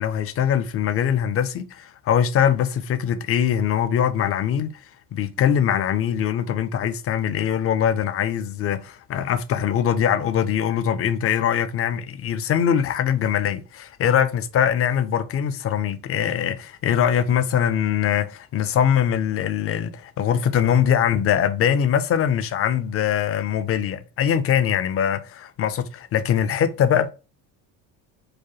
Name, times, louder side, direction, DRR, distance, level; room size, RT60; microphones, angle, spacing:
voice 1, 0.0-4.7 5.1-27.1, left 9 dB, 30° left, 0.4 m, -22 dB
4.7 x 2.2 x 3.0 m
supercardioid pair, 85°, 47 cm